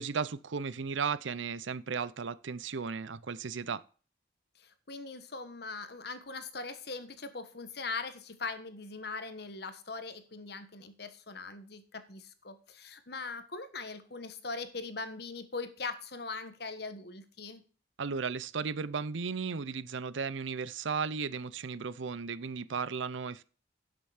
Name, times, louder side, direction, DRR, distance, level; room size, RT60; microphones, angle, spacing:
voice 1, 0.0-3.8 18.0-23.4, right 5 dB, 75° right, 0.6 m, -35 dB
voice 2, 4.6-17.6, left 4 dB, 55° left, 1.3 m, -41 dB
11.5 x 6.7 x 5.0 m
head